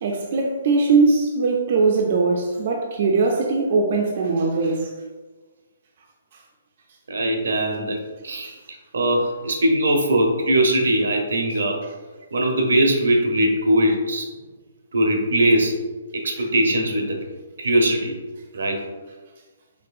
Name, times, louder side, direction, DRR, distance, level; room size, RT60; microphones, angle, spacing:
voice 1, 0.0-4.9, right 4 dB, 45° right, 1 dB, 0.4 m, -20 dB
voice 2, 7.1-8.0 8.2-8.6 8.9-11.8 12.3-14.3 14.9-15.9 16.1-17.2 17.6-18.2 18.5-18.8, right 1 dB, 85° right, 2 dB, 0.7 m, -20 dB
4.3 x 2.8 x 2.4 m, 1.2 s
hypercardioid pair, 165°, 0 cm